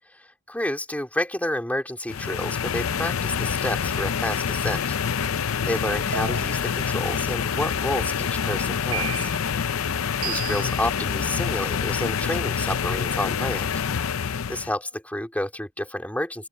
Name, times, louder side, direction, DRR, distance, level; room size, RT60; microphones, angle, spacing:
voice 1, 0.5-5.0 5.6-9.3 10.2-13.7 14.5-16.5, left 1 dB, 5° left, 3.0 m, -30 dB
sound 1, 2.1-14.7, left 7 dB, 75° left, 0.6 m, -26 dB
sound 2, 6.1-6.7 7.5-8.1 8.9-9.5 10.2-10.8, right 8 dB, 90° right, 6.4 m, -34 dB
open air
head